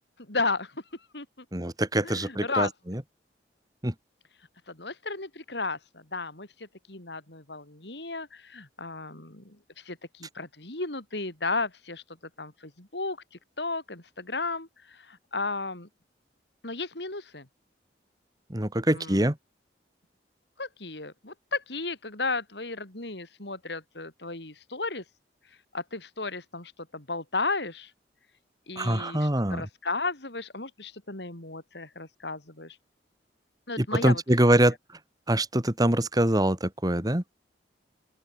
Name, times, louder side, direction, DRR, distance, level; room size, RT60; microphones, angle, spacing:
voice 1, 0.2-0.8 1.1-1.4 2.0-2.7 4.7-12.0 12.4-15.9 16.6-17.5 18.9-19.3 20.6-25.0 25.7-27.9 28.7-32.8 33.7-34.2, left 3 dB, 70° left, 4.8 m, -34 dB
voice 2, 1.5-3.0 3.8-3.9 18.5-19.4 28.8-29.6 33.8-34.7 35.3-37.2, right 1 dB, 20° right, 2.6 m, -24 dB
open air
head